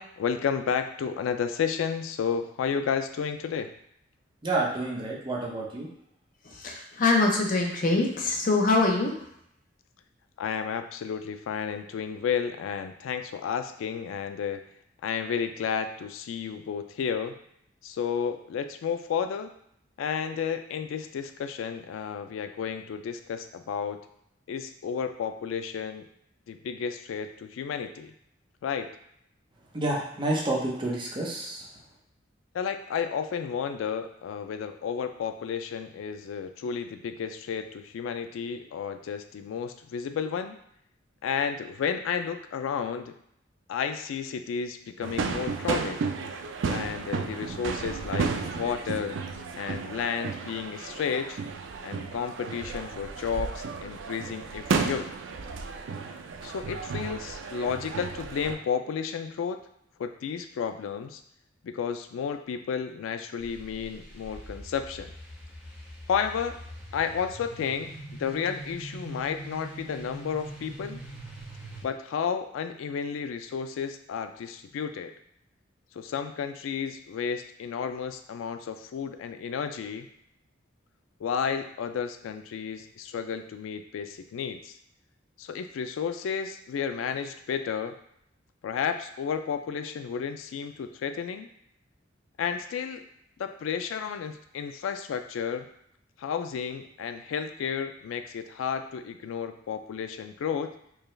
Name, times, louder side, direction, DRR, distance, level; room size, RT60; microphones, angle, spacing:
voice 1, 0.0-3.7 10.4-14.6 15.0-17.4 17.8-19.5 20.0-24.0 24.5-26.1 26.5-28.1 28.6-28.9 32.5-40.6 41.2-43.1 43.7-46.0 46.6-49.2 49.6-51.4 51.8-55.1 56.4-59.6 60.0-61.2 61.6-65.1 66.1-66.6 66.9-67.9 68.2-71.0 71.8-75.1 76.0-80.1 81.2-84.7 85.4-88.0 88.6-91.5 92.4-93.0 93.4-95.7 96.2-100.7, left 7 dB, 90° left, 8 dB, 0.3 m, -32 dB
voice 2, 4.4-5.9 29.7-31.7, right 2 dB, 25° right, -3 dB, 0.8 m, -29 dB
voice 3, 6.5-9.1, left 3 dB, 45° left, 1 dB, 0.6 m, -24 dB
sound 1, 45.0-58.6, right 5 dB, 70° right, 0.4 m, -33 dB
sound 2, 63.4-71.8, right 1 dB, 5° right, 1.0 m, -43 dB
4.7 x 2.3 x 3.1 m, 0.74 s
head